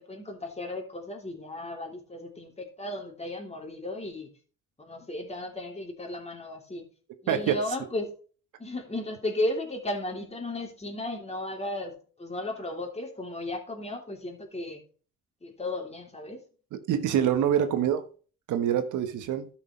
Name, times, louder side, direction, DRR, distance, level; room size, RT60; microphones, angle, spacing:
voice 1, 0.1-4.3 4.8-6.8 7.2-8.1 8.6-14.8 15.4-16.4, left 1 dB, 20° left, 3.3 m, -35 dB
voice 2, 7.3-7.6 16.7-18.0 18.5-19.5, right 9 dB, 80° right, 1.3 m, -25 dB
12.5 x 6.5 x 3.2 m
cardioid pair, 90°, 30 cm